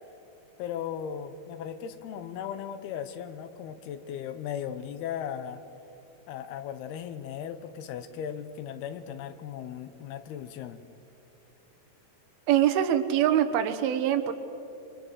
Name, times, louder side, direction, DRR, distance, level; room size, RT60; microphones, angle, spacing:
voice 1, 0.6-5.6 6.3-10.8, left 9 dB, 85° left, 10 dB, 3.1 m, -37 dB
voice 2, 12.5-14.3, right 10 dB, 80° right, 8 dB, 3.0 m, -24 dB
28.0 x 24.5 x 6.6 m, 2.8 s
omnidirectional pair, 4.4 m